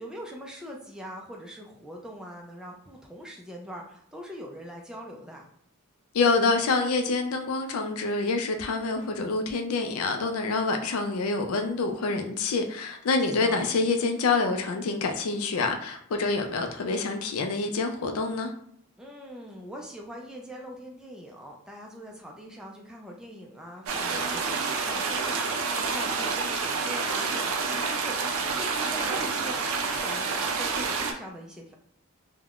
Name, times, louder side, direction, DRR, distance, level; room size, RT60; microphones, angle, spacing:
voice 1, 0.0-5.5 13.3-13.6 19.0-31.7, equal, 5° right, 0.3 m, -42 dB
voice 2, 6.1-18.5, left 3 dB, 75° left, 0.4 m, -26 dB
sound 1, 23.9-31.1, right 4 dB, 70° right, 0.4 m, -28 dB
3.4 x 2.1 x 2.4 m
head